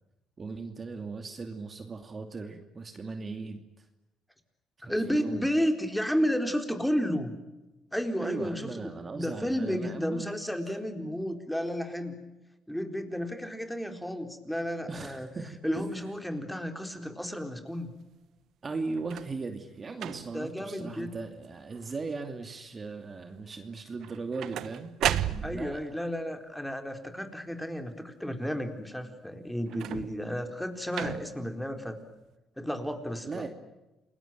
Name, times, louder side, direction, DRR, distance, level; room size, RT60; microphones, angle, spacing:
voice 1, 0.4-3.9 4.8-5.5 8.2-10.3 10.7-10.8 14.9-15.9 18.6-24.9 25.2-25.8 33.3-33.5, right 4 dB, 35° right, 5 dB, 2.6 m, -38 dB
voice 2, 4.9-7.3 7.9-12.2 12.7-15.3 15.6-17.9 20.3-21.1 25.4-32.0 32.6-33.5, equal, 5° left, 5 dB, 4.1 m, -32 dB
sound 1, 19.0-19.4 19.9-20.5 21.1-21.5 21.7-22.3 24.0-25.8 29.7-30.3 30.9-31.5 32.3-32.4, right 11 dB, 70° right, 1.1 m, -34 dB
29.0 x 20.5 x 9.3 m, 1.0 s
cardioid pair, 85°, 0 cm